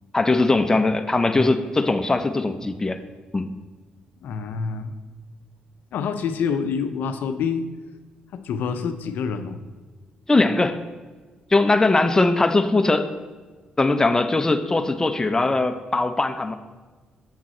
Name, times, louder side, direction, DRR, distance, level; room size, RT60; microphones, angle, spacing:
voice 1, 0.1-3.0 3.3-3.5 10.3-10.8 11.5-13.1 13.8-16.5, left 2 dB, 20° left, 8 dB, 0.6 m, -20 dB
voice 2, 4.2-5.0 5.9-7.6 8.3-9.6, left 6 dB, 75° left, 9 dB, 0.5 m, -27 dB
7.3 x 6.1 x 4.3 m, 1.4 s
supercardioid pair, 70°, 3 cm